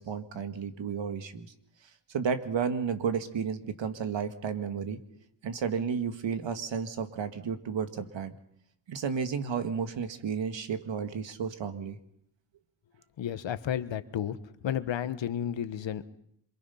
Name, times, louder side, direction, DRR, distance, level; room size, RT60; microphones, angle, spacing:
voice 1, 0.0-1.5 2.1-5.0 5.4-8.4 8.9-12.0, right 6 dB, 65° right, 9 dB, 2.0 m, -32 dB
voice 2, 13.2-14.4 14.6-16.1, left 10 dB, 65° left, 12 dB, 1.4 m, -32 dB
27.0 x 22.5 x 5.7 m, 0.73 s
cardioid pair, 100°, 48 cm